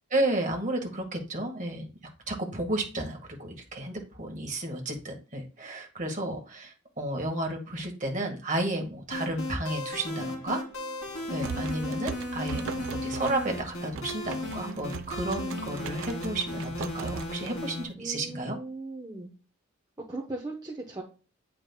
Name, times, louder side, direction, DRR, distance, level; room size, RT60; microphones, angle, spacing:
voice 1, 0.1-1.9 2.3-10.6 11.3-18.6, right 1 dB, 40° right, 2 dB, 1.6 m, -32 dB
sound 1, 9.1-17.8, left 1 dB, 85° left, 2.4 m, -36 dB
sound 2, 11.1-17.9, right 7 dB, 75° right, 0.3 m, -40 dB
voice 2, 18.0-19.3 20.1-21.0, right 2 dB, 20° right, -1 dB, 0.9 m, -38 dB
8.8 x 5.0 x 2.2 m, 0.36 s
head